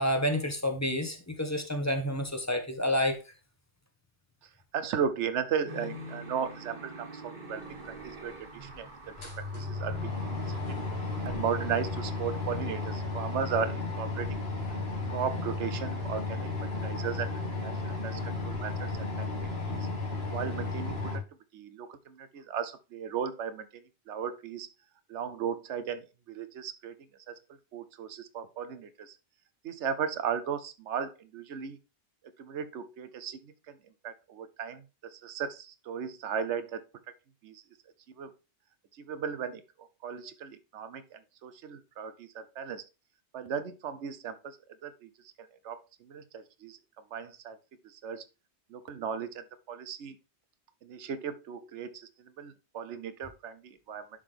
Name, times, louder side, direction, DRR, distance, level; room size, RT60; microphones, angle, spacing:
voice 1, 0.0-3.2, left 1 dB, 15° left, 5 dB, 1.0 m, -29 dB
voice 2, 4.7-9.1 9.5-10.6 11.2-14.4 15.1-16.5 16.8-19.3 19.6-19.9 20.3-21.2 21.5-23.7 24.1-24.7 25.1-26.9 27.3-27.4 27.7-29.2 29.6-31.8 32.4-33.8 34.0-36.8 37.4-37.6 38.2-38.3 39.0-39.6 40.0-42.8 43.3-44.6 44.8-45.1 45.4-46.8 47.1-47.6 47.8-48.2 48.7-50.1 50.8-52.1 52.4-54.1, right 7 dB, 90° right, 12 dB, 1.0 m, -36 dB
sound 1, 5.6-13.0, right 1 dB, 45° right, 1.7 m, -45 dB
sound 2, 8.0-8.1 8.7-8.8 9.0-21.2, left 3 dB, 65° left, 2.2 m, -34 dB
11.0 x 3.9 x 3.3 m, 0.30 s
omnidirectional pair, 1.2 m